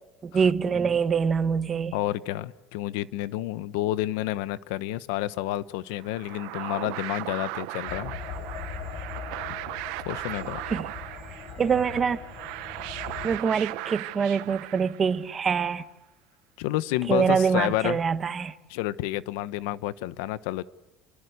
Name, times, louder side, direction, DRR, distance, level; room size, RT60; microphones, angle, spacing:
voice 1, 0.2-1.9 10.7-10.9 11.6-12.2 13.2-15.8 17.1-18.5, right 6 dB, 20° right, 1.1 m, -24 dB
voice 2, 1.9-8.1 9.5-9.6 10.1-10.6 16.6-18.0 18.7-20.6, left 15 dB, 80° left, 1.0 m, -30 dB
sound 1, 6.0-15.4, right 20 dB, 65° right, 0.8 m, -37 dB
sound 2, 7.9-13.4, left 7 dB, 40° left, 4.0 m, -40 dB
30.0 x 23.5 x 8.2 m
cardioid pair, 175°, 0 cm